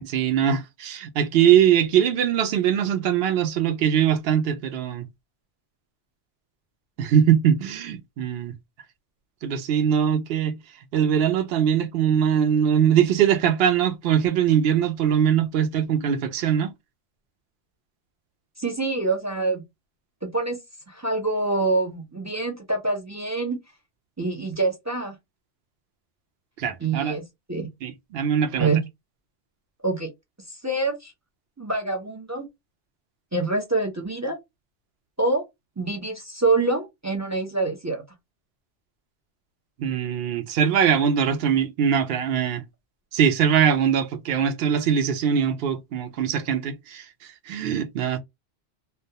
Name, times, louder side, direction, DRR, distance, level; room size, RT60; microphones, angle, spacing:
voice 1, 0.0-5.1 7.0-8.5 9.4-10.6 10.9-16.7 26.6-27.2 27.8-28.7 39.8-42.6 43.1-48.2, right 8 dB, 65° right, 0.7 m, -22 dB
voice 2, 18.6-19.6 20.2-20.6 20.9-23.6 24.2-25.1 26.8-27.7 28.5-28.8 29.8-30.1 30.6-31.1 31.6-32.5 33.3-34.4 35.2-35.4 35.8-38.0, right 3 dB, 25° right, 0.4 m, -25 dB
2.3 x 2.1 x 2.7 m
omnidirectional pair, 1.2 m